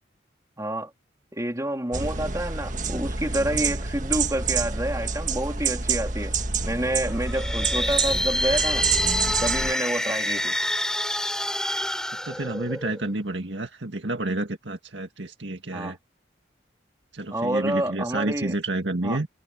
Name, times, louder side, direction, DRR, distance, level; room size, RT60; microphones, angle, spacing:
voice 1, 0.6-0.9 1.3-6.3 6.7-8.9 9.4-10.5 15.7-16.0 17.3-18.5 19.0-19.2, right 1 dB, 15° right, 2.7 m, -28 dB
sound 1, 1.9-9.7, right 5 dB, 40° right, 1.7 m, -27 dB
sound 2, 7.2-13.1, left 1 dB, 5° left, 3.8 m, -27 dB
voice 2, 12.3-16.0 17.1-19.3, right 2 dB, 75° right, 1.9 m, -30 dB
head